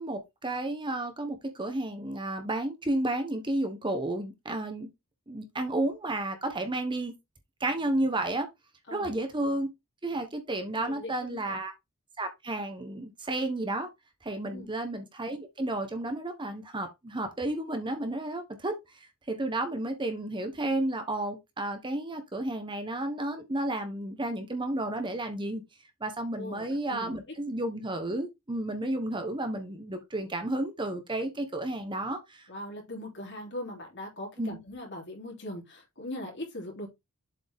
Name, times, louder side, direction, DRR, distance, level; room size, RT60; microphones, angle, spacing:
voice 1, 0.0-4.9 5.3-7.1 7.6-8.5 8.9-9.7 10.0-11.7 12.2-13.9 14.2-25.6 26.0-32.5 34.4-34.6, right 1 dB, 20° right, 1.0 m, -32 dB
voice 2, 10.8-11.6 14.5-14.7 26.4-27.2 32.5-36.9, left 1 dB, 55° left, 3.1 m, -40 dB
7.5 x 4.8 x 3.5 m
head